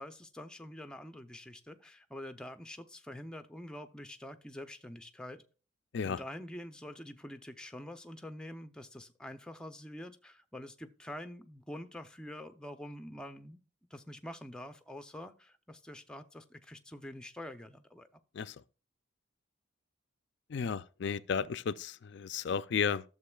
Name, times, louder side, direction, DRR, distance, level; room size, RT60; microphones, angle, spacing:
voice 1, 0.0-5.4 6.0-13.6 13.9-18.2 20.6-20.7, left 1 dB, 5° left, 0.5 m, -46 dB
voice 2, 20.5-23.0, left 6 dB, 55° left, 0.4 m, -33 dB
13.0 x 7.1 x 2.3 m
head